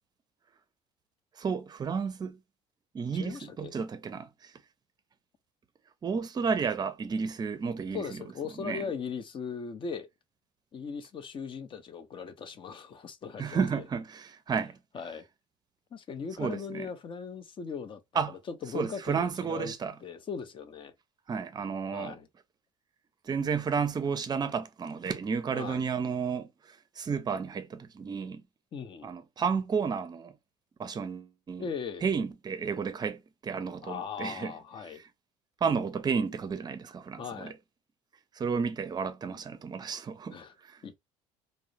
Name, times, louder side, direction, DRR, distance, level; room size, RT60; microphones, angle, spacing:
voice 1, 1.4-2.4 2.9-4.5 6.0-8.2 8.6-8.8 13.4-14.8 16.4-16.9 18.1-18.3 18.7-19.9 21.3-22.2 23.2-26.5 27.0-28.4 29.0-30.3 30.8-31.6 32.0-34.5 35.6-37.5 38.4-40.4 40.6-40.8, right 6 dB, 30° right, 0.5 m, -32 dB
voice 2, 3.1-3.8 7.9-10.1 10.7-13.8 14.9-15.2 15.9-19.7 20.0-20.9 21.9-22.3 25.5-25.8 28.7-29.1 31.6-32.1 33.8-35.0 37.2-37.5 40.3-40.5 40.8-40.9, left 6 dB, 40° left, 0.6 m, -39 dB
2.4 x 2.0 x 2.8 m
supercardioid pair, 95°, 13 cm